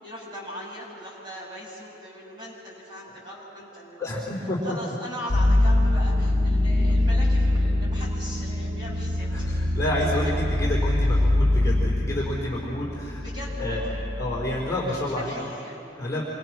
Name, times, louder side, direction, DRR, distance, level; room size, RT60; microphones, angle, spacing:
voice 1, 0.0-4.1 4.6-9.6 13.2-13.9 14.9-15.8, equal, 25° right, -5 dB, 7.3 m, -39 dB
voice 2, 4.0-4.8 9.3-13.2 13.6-13.8 14.2-15.3 16.0-16.2, left 1 dB, 15° left, -5 dB, 3.8 m, -29 dB
sound 1, 5.3-14.9, left 1 dB, 55° right, 3.1 m, -23 dB
27.5 x 24.5 x 6.1 m, 2.8 s
head